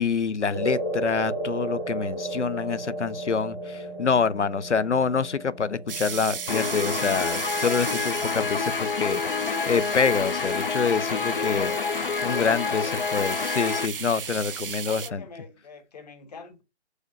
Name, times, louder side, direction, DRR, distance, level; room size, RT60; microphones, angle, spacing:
voice 1, 0.0-9.2 9.7-11.7 12.2-12.8 13.1-15.2, left 5 dB, 85° left, 0.7 m, -26 dB
sound 1, 0.5-9.0, right 1 dB, 10° right, 0.6 m, -34 dB
sound 2, 5.9-15.1, right 6 dB, 55° right, 0.4 m, -36 dB
Guitar, 6.5-13.9, left 5 dB, 55° left, 0.5 m, -28 dB
voice 2, 11.2-11.9 12.2-13.2 14.8-16.6, left 5 dB, 35° left, 1.4 m, -42 dB
6.5 x 5.0 x 5.2 m
figure-of-eight pair, 155°, 34 cm